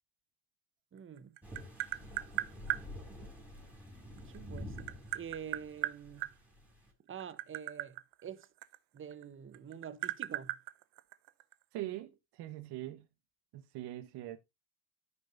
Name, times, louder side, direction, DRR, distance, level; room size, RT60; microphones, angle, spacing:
voice 1, 0.9-1.4 4.2-6.3 7.1-8.5 8.9-10.6, right 8 dB, 30° right, 1.1 m, -47 dB
Tap, 1.0-2.8 4.2-6.3 7.1-9.2 9.5-11.5, right 18 dB, 85° right, 0.8 m, -37 dB
sound 1, 1.4-6.9, left 1 dB, 5° right, 3.8 m, -48 dB
voice 2, 11.7-13.1 13.5-14.4, right 15 dB, 65° right, 1.4 m, -42 dB
14.0 x 5.5 x 2.7 m
cardioid pair, 125°, 43 cm